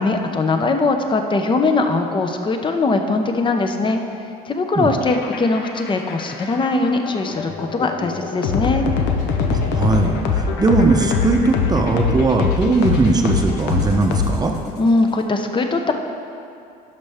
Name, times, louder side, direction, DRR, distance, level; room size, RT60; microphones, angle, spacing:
voice 1, 0.0-8.9 14.8-15.9, left 3 dB, 30° left, 5 dB, 0.7 m, -20 dB
sound 1, 5.0-14.8, left 5 dB, 90° left, 0.8 m, -23 dB
voice 2, 9.5-14.5, right 3 dB, 25° right, 3 dB, 0.7 m, -19 dB
12.0 x 5.4 x 3.5 m, 2.6 s
cardioid pair, 110°, 17 cm